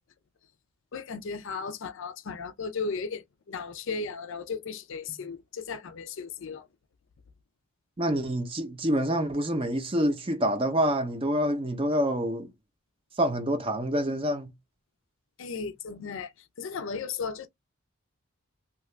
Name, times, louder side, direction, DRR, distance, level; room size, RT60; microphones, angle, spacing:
voice 1, 0.9-6.7 15.4-16.3 16.6-17.5, left 5 dB, 60° left, 0.4 m, -35 dB
voice 2, 8.0-12.5 13.2-14.5, equal, 25° right, 0.5 m, -27 dB
2.8 x 2.4 x 3.1 m
head